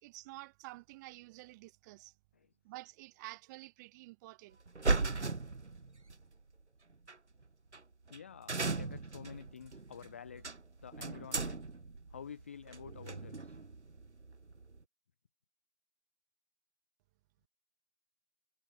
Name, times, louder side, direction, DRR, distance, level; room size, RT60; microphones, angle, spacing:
voice 1, 0.0-2.1 2.6-4.6, right 20 dB, 15° right, 1.8 m, -50 dB
sound 1, 4.7-6.2 7.1-7.2 7.7-7.8 8.1-8.2 8.5-14.8, right 3 dB, 65° right, 4.0 m, -37 dB
voice 2, 8.1-11.6 12.1-13.6, left 8 dB, 10° left, 0.7 m, -50 dB
figure-of-eight pair, 145°, 37 cm